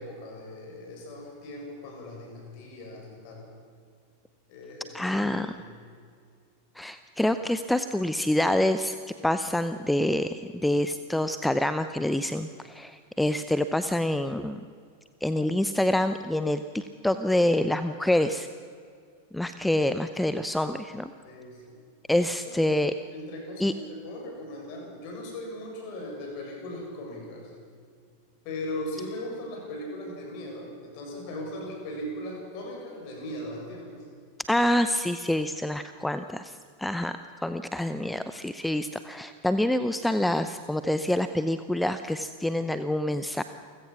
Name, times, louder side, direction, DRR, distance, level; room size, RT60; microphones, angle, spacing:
voice 1, 0.0-3.5 4.5-5.2 5.6-5.8 21.2-21.8 22.4-27.5 28.4-34.0, left 1 dB, 45° left, 0 dB, 7.3 m, -39 dB
voice 2, 4.9-5.5 6.8-9.0 9.2-14.6 15.2-18.5 19.3-21.1 22.1-22.9 23.6-23.7 34.5-43.4, left 1 dB, 5° left, 11 dB, 0.7 m, -26 dB
29.5 x 16.0 x 6.1 m, 2.2 s
figure-of-eight pair, 90°, 0 cm